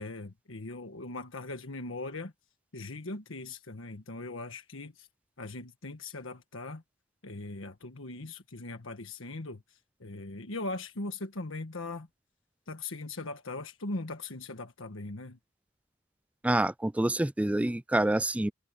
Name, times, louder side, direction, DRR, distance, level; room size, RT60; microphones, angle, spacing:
voice 1, 0.0-2.3 2.7-5.1 5.4-6.8 7.2-12.1 12.7-15.4, left 2 dB, 85° left, 1.5 m, -40 dB
voice 2, 16.4-18.5, right 1 dB, 5° right, 0.3 m, -27 dB
head